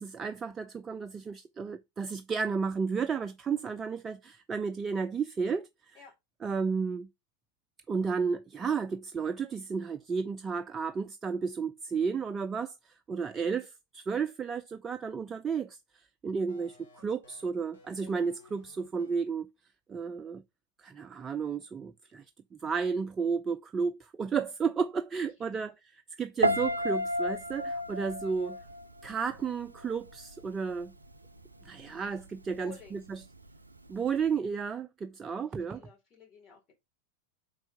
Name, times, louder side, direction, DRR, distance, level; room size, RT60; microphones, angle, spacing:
voice 1, 0.0-6.0 6.4-7.1 7.9-12.8 13.1-15.8 16.2-19.5 19.9-20.4 20.8-22.2 22.6-25.7 26.2-28.6 29.0-30.9 31.6-33.0 33.9-35.8, right 5 dB, 20° right, 0.4 m, -32 dB
sound 1, 16.5-19.1, left 3 dB, 65° left, 3.0 m, -57 dB
voice 2, 25.4-25.7 28.4-28.7 32.5-33.0 35.3-36.7, left 7 dB, 30° left, 3.7 m, -54 dB
Piano, 26.4-29.5 29.8-30.2, equal, 80° right, 0.5 m, -31 dB
5.4 x 4.5 x 5.3 m
figure-of-eight pair, 90°, 0 cm